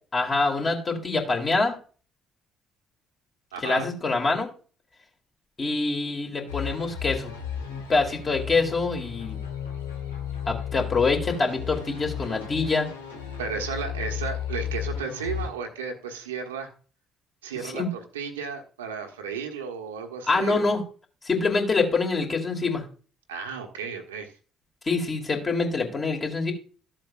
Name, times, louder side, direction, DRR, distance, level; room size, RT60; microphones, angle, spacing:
voice 1, 0.1-1.7 3.6-4.5 5.6-7.3 7.7-9.4 10.5-12.9 17.7-17.9 20.3-20.8 21.2-22.8 24.8-26.5, left 3 dB, 35° left, 2 dB, 2.6 m, -25 dB
voice 2, 3.5-3.9 13.4-16.7 17.4-20.8 23.3-24.3, right 6 dB, 75° right, 3 dB, 1.2 m, -34 dB
sound 1, 6.5-15.5, left 8 dB, 80° left, 1.3 m, -34 dB
13.5 x 7.5 x 2.5 m, 0.39 s
figure-of-eight pair, 50°, 0 cm